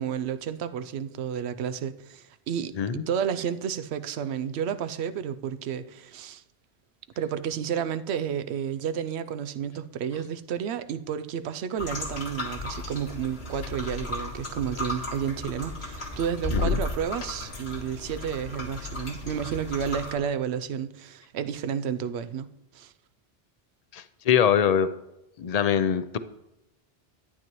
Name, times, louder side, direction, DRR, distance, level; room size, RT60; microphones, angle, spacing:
voice 1, 0.0-6.4 7.2-22.9, right 8 dB, 90° right, 0.9 m, -31 dB
voice 2, 2.8-3.1 16.5-16.8 23.9-24.9 25.4-26.2, left 8 dB, 50° left, 0.5 m, -23 dB
sound 1, 11.8-20.1, left 2 dB, 80° left, 2.1 m, -34 dB
12.0 x 9.4 x 3.0 m
omnidirectional pair, 1.1 m